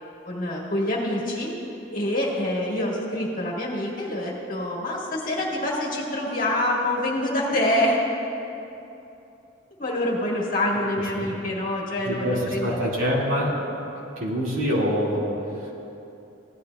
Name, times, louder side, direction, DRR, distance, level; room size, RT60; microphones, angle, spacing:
voice 1, 0.2-1.5 1.9-8.0 9.8-12.8, left 1 dB, 45° left, -3 dB, 1.7 m, -26 dB
voice 2, 12.1-13.7 14.2-15.7, equal, 85° right, -4 dB, 2.1 m, -25 dB
16.5 x 11.0 x 2.3 m, 2.9 s
head